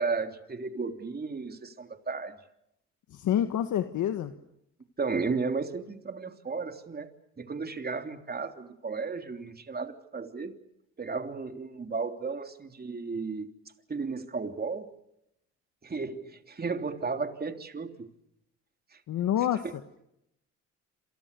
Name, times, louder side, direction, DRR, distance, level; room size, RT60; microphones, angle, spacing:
voice 1, 0.0-2.3 5.0-7.1 7.4-10.5 11.0-13.5 13.9-14.9 15.8-18.1, right 4 dB, 30° right, 6 dB, 3.3 m, -34 dB
voice 2, 3.1-4.3 19.1-19.6, left 10 dB, 75° left, 9 dB, 1.6 m, -27 dB
28.5 x 27.5 x 6.9 m, 0.81 s
cardioid pair, 90°, 30 cm